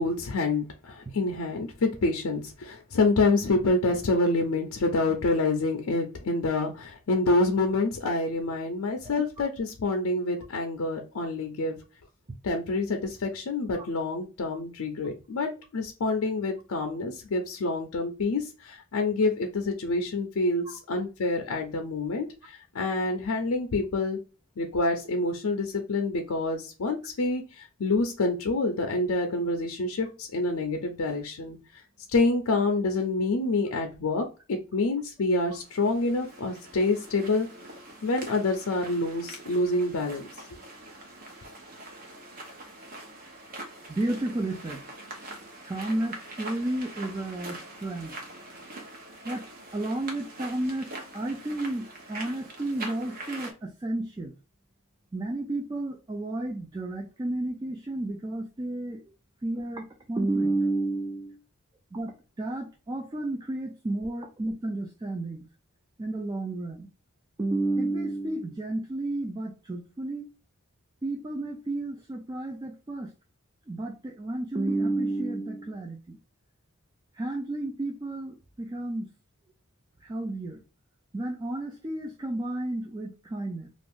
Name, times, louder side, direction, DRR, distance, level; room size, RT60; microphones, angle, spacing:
voice 1, 0.0-11.8 12.4-24.2 24.6-31.8 32.1-37.5 38.0-40.3, left 2 dB, 85° left, 0.5 m, -27 dB
sound 1, 35.5-53.5, right 2 dB, 40° right, 0.8 m, -43 dB
voice 2, 43.9-44.8 45.6-48.1 49.2-54.3 55.1-59.0 59.4-61.4 61.9-65.4 66.0-66.9 67.4-70.3 71.0-73.1 73.7-76.2 77.1-79.1 80.0-80.6 81.1-83.7, right 2 dB, 20° right, 0.3 m, -32 dB
2.5 x 2.4 x 3.4 m
head